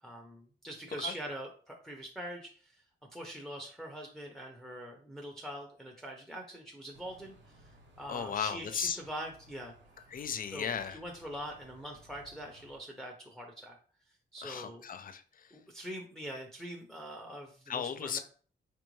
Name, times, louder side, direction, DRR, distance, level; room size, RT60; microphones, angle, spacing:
voice 1, 0.0-2.8 3.1-9.7 10.5-13.8 14.3-14.8 15.5-18.2, right 1 dB, ahead, 0.7 m, -43 dB
sound 1, 6.9-12.8, right 1 dB, 80° right, 0.9 m, -59 dB
voice 2, 8.1-9.0 10.1-11.0 14.4-15.5 17.7-18.2, left 7 dB, 50° left, 0.4 m, -36 dB
4.3 x 2.6 x 3.1 m
wide cardioid pair, 115°, 19 cm